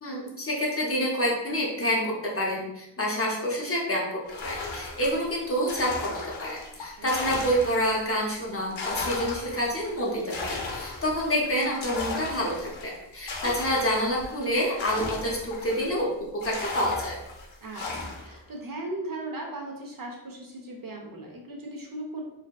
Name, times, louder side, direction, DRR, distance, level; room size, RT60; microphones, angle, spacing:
voice 1, 0.0-4.0 4.4-16.1 16.4-17.2, equal, 30° left, -3 dB, 0.6 m, -28 dB
sound 1, 4.3-8.1 8.5-16.0 16.4-18.4, left 3 dB, 70° left, 0.6 m, -36 dB
voice 2, 7.0-7.3 17.6-22.2, right 2 dB, 45° right, 0 dB, 0.5 m, -38 dB
2.7 x 2.1 x 2.2 m, 0.91 s
cardioid pair, 70°, 48 cm